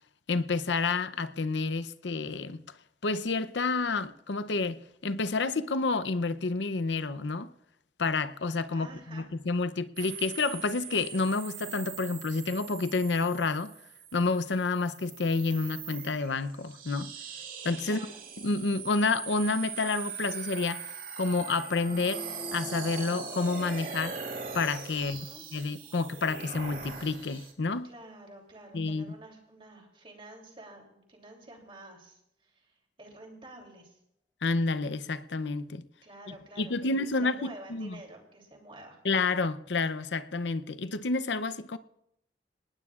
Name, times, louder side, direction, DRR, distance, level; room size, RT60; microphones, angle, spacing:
voice 1, 0.3-2.6 3.0-7.5 8.0-13.7 14.1-17.1 17.6-18.0 18.4-20.8 21.2-22.2 22.5-24.2 24.5-25.3 25.5-27.9 28.7-29.1 34.4-35.8 36.6-38.0 39.0-41.8, left 3 dB, 85° left, 0.7 m, -29 dB
voice 2, 8.7-9.3 17.8-18.2 25.0-25.4 27.8-34.0 36.0-39.0, right 2 dB, 30° right, 3.1 m, -50 dB
sound 1, 10.0-27.5, right 6 dB, 50° right, 2.2 m, -41 dB
sound 2, 21.8-24.4, equal, 10° right, 2.4 m, -44 dB
26.0 x 19.0 x 2.5 m
head